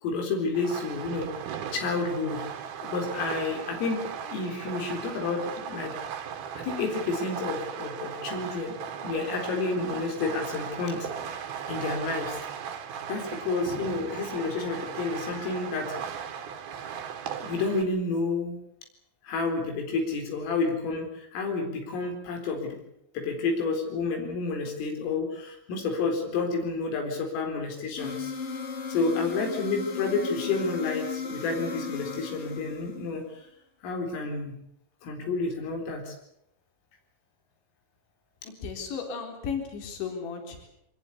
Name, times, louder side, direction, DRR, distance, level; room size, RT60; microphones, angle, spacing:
voice 1, 0.0-1.3 1.7-2.4 2.8-4.0 4.3-5.9 6.6-11.1 11.7-12.4 13.1-16.3 17.4-18.6 19.2-22.8 23.1-28.3 28.9-33.5 33.8-34.6 35.0-36.1, left 3 dB, 85° left, 3 dB, 6.6 m, -30 dB
Fireworks, 0.5-17.8, right 8 dB, 60° right, 3.4 m, -37 dB
sound 1, 28.0-33.3, left 5 dB, 45° left, 2.0 m, -36 dB
voice 2, 38.4-40.7, left 6 dB, 65° left, 3 dB, 6.3 m, -35 dB
24.0 x 20.5 x 8.5 m, 0.74 s
omnidirectional pair, 5.7 m